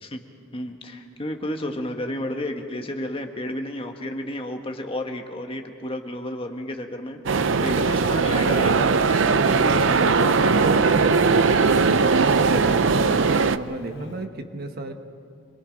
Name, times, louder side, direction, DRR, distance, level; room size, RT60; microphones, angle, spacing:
voice 1, 0.5-11.1, left 1 dB, 30° left, 4 dB, 1.4 m, -32 dB
sound 1, 7.3-13.6, right 5 dB, 70° right, 0.6 m, -19 dB
voice 2, 7.5-8.0 11.4-14.9, right 2 dB, 50° right, 6 dB, 1.3 m, -33 dB
Race car auto racing / Accelerating revving vroom, 8.9-14.1, left 3 dB, 55° left, 1.3 m, -34 dB
27.0 x 21.5 x 5.2 m, 2.2 s
head